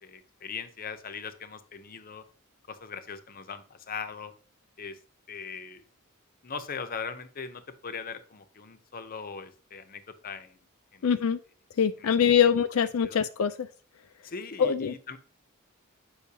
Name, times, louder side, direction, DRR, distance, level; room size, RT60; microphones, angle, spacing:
voice 1, 0.0-2.2 2.7-4.3 4.8-5.0 5.3-5.8 6.4-10.6 10.9-11.1 12.0-12.1 13.0-13.2 14.2-15.2, left 5 dB, 40° left, 10 dB, 0.7 m, -40 dB
voice 2, 11.0-11.4 11.8-13.7 14.6-14.9, left 7 dB, 75° left, 8 dB, 0.4 m, -23 dB
8.3 x 5.5 x 2.8 m, 0.39 s
head